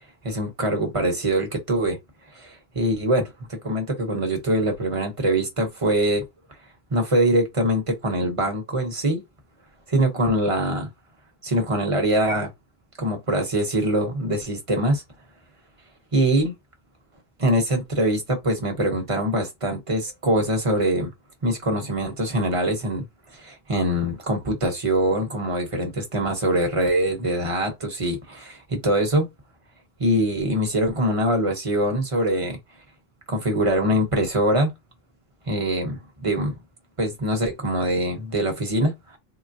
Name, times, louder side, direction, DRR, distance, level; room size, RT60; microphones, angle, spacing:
voice 1, 0.2-2.0 2.3-6.2 6.9-9.2 9.9-10.9 11.4-12.5 13.0-15.0 16.1-16.5 17.4-21.1 21.4-29.3 30.0-32.6 33.3-34.7 35.5-36.5 37.0-39.2, right 1 dB, 35° right, 0.9 m, -23 dB
3.8 x 2.0 x 2.5 m
omnidirectional pair, 1.0 m